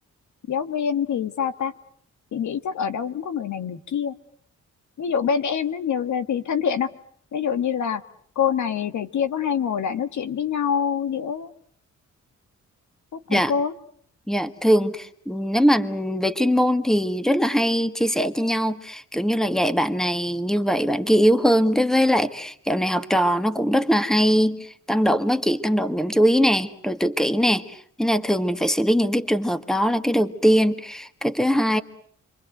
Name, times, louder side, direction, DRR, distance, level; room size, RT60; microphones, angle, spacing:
voice 1, 0.5-1.7 2.3-4.1 5.0-6.9 7.3-8.0 8.3-11.5 13.3-13.7, left 7 dB, 70° left, 11 dB, 1.6 m, -25 dB
voice 2, 14.3-31.8, equal, ahead, 10 dB, 1.7 m, -21 dB
29.5 x 23.5 x 7.9 m, 0.62 s
cardioid pair, 90°, 30 cm